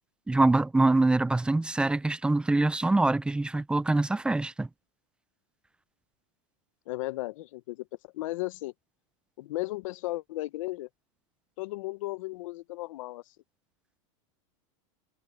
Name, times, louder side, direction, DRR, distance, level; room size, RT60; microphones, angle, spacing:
voice 1, 0.3-4.7, right 2 dB, 5° right, 0.5 m, -24 dB
voice 2, 6.9-8.7 9.4-10.9 11.6-13.2, left 19 dB, 70° left, 1.0 m, -35 dB
supercardioid pair, 130°, 17 cm